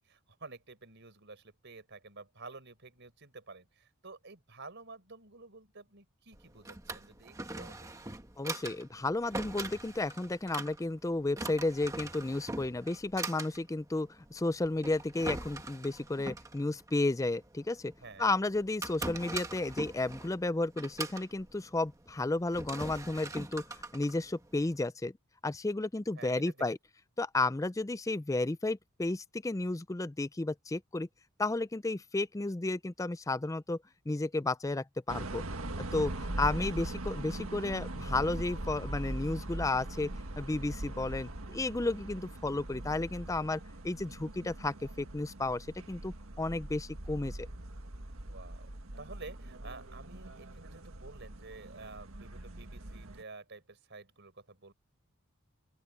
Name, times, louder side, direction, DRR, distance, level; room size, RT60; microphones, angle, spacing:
voice 1, 0.0-8.0 18.0-18.3 26.1-26.7 36.4-36.7 48.3-48.7 49.0-54.7, right 3 dB, 55° right, 4.7 m, -51 dB
Drawer open or close, 6.3-24.9, right 2 dB, 15° right, 1.2 m, -43 dB
voice 2, 8.4-17.9 18.2-23.6 23.9-25.1 25.4-26.8 27.2-31.1 31.4-33.8 34.1-35.4 35.9-40.1 40.4-47.5, left 2 dB, 15° left, 0.4 m, -33 dB
sound 1, 35.1-53.2, right 1 dB, 70° right, 1.7 m, -41 dB
open air
head